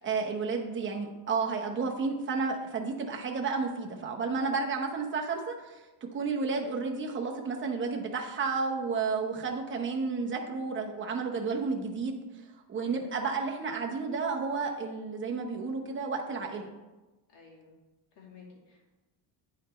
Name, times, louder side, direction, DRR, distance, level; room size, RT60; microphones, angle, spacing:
voice 1, 0.0-12.2 12.7-16.7, right 4 dB, 25° right, 1 dB, 0.8 m, -32 dB
voice 2, 17.3-17.8 18.1-18.9, left 5 dB, 55° left, -2 dB, 2.3 m, -54 dB
9.3 x 4.1 x 4.3 m, 1.1 s
cardioid pair, 160°, 49 cm